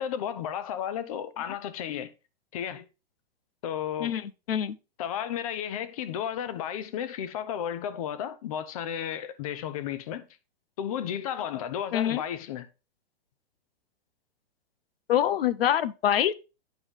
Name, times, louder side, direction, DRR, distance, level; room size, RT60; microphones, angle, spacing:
voice 1, 0.0-2.1 2.5-2.9 3.6-4.2 5.0-10.3 10.8-12.7, left 9 dB, 40° left, 0.7 m, -33 dB
voice 2, 11.9-12.2 15.1-16.3, left 10 dB, 80° left, 0.7 m, -25 dB
9.3 x 5.5 x 3.3 m
hypercardioid pair, 160°, 29 cm